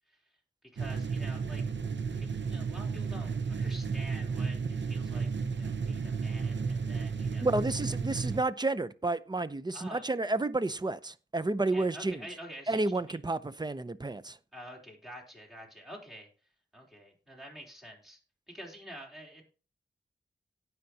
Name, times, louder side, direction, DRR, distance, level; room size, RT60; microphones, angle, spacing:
voice 1, 0.7-1.6 2.2-7.4 9.7-10.0 11.7-13.2 14.5-16.3 16.7-18.2 18.5-19.4, equal, ahead, 3.4 m, -48 dB
sound 1, 0.8-8.4, right 5 dB, 70° right, 0.7 m, -33 dB
voice 2, 7.4-12.2 12.7-14.4, right 2 dB, 20° right, 0.6 m, -31 dB
17.5 x 5.8 x 2.8 m
wide cardioid pair, 85°, 19 cm